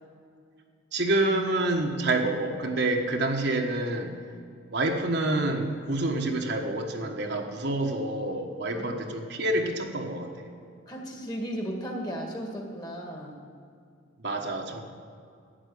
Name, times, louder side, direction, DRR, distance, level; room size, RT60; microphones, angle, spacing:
voice 1, 0.9-4.2 4.7-10.5 14.2-14.8, right 2 dB, 55° right, 2 dB, 1.3 m, -28 dB
voice 2, 10.9-13.4, equal, 20° left, 2 dB, 1.7 m, -35 dB
11.5 x 9.0 x 8.4 m, 2.3 s
head